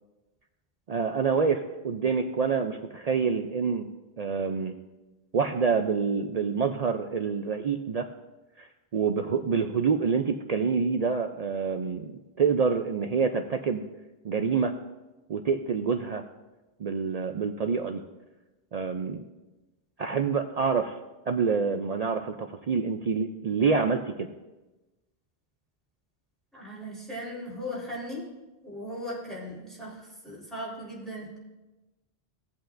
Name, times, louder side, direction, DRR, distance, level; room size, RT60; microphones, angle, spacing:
voice 1, 0.9-3.9 4.2-4.7 5.3-8.1 8.6-12.1 12.4-13.8 14.2-14.7 15.3-16.2 16.8-18.0 18.7-19.2 20.0-21.0 21.3-24.3, right 5 dB, 50° right, 6 dB, 0.5 m, -27 dB
voice 2, 26.5-28.3 28.6-31.4, equal, ahead, -6 dB, 3.7 m, -38 dB
17.5 x 8.1 x 2.5 m, 1.1 s
omnidirectional pair, 1.0 m